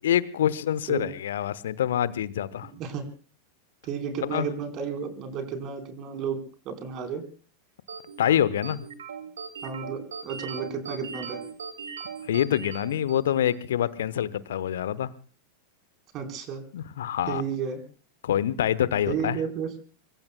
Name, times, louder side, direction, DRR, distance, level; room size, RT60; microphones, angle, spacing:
voice 1, 0.0-2.7 4.3-4.5 8.2-8.8 12.3-15.1 16.7-17.4 18.2-19.4, left 10 dB, 60° left, 18 dB, 1.0 m, -26 dB
voice 2, 2.6-3.0 3.8-7.2 9.6-11.4 16.1-16.6 17.3-17.8 19.1-19.7, right 6 dB, 35° right, 6 dB, 4.2 m, -32 dB
sound 1, 7.9-13.6, right 6 dB, 65° right, 2.4 m, -39 dB
25.5 x 24.0 x 2.3 m, 0.39 s
figure-of-eight pair, 90°, 0 cm